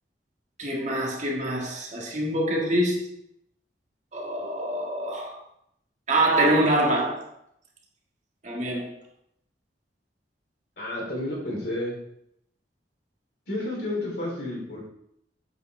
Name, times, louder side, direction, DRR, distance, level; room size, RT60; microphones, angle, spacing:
voice 1, 0.6-3.1 4.1-5.4 6.1-7.3 8.4-9.0, right 1 dB, 40° right, 1.6 m, -25 dB
voice 2, 10.8-12.0 13.5-14.8, left 1 dB, 60° left, 3.1 m, -31 dB
8.1 x 7.6 x 3.2 m
head